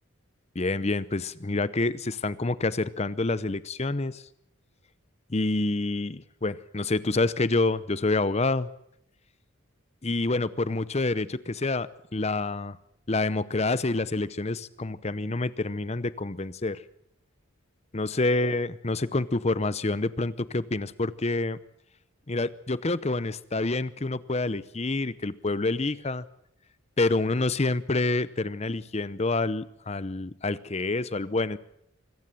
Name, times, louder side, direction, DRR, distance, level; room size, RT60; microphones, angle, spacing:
voice 1, 0.5-4.2 5.3-8.7 10.0-12.8 13.1-16.8 17.9-21.6 22.3-26.2 27.0-31.6, left 2 dB, 30° left, 17 dB, 0.7 m, -27 dB
25.0 x 15.0 x 7.5 m, 0.76 s
head